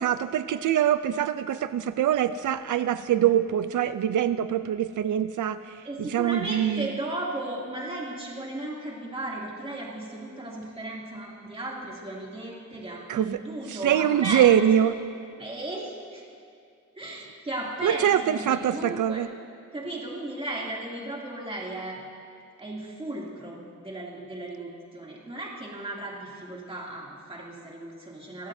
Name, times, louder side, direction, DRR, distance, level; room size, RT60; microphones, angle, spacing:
voice 1, 0.0-6.9 13.1-13.4 13.7-15.0 17.8-19.3, right 10 dB, 90° right, 12 dB, 0.5 m, -24 dB
voice 2, 5.8-14.5 15.4-16.2 17.0-19.2 19.7-22.0 22.6-28.5, right 1 dB, 20° right, -4 dB, 2.7 m, -35 dB
29.5 x 15.5 x 2.7 m, 2.3 s
wide cardioid pair, 175°, 30 cm